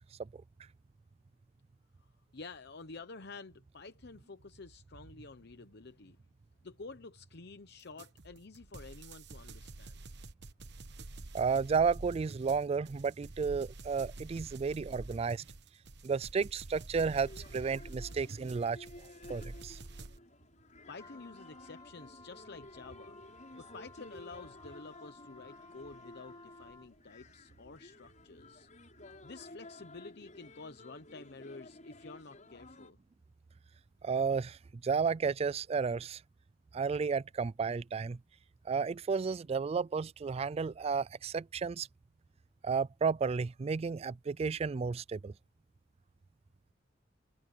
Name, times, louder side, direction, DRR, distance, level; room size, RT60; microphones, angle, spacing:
voice 1, 2.0-6.2 6.6-10.0 20.9-23.2 23.5-28.7 29.2-33.0, left 3 dB, 60° left, 0.9 m, -50 dB
sound 1, 8.0-20.2, right 2 dB, 65° right, 1.1 m, -48 dB
voice 2, 11.3-15.4 16.0-18.8 19.3-19.8 34.0-36.2 36.7-38.2 38.7-41.9 42.6-45.3, right 5 dB, 35° right, 0.3 m, -32 dB
sound 2, 17.0-32.9, left 2 dB, 40° left, 6.5 m, -54 dB
Wind instrument woodwind instrument, 21.0-27.0, left 3 dB, 20° left, 4.7 m, -56 dB
head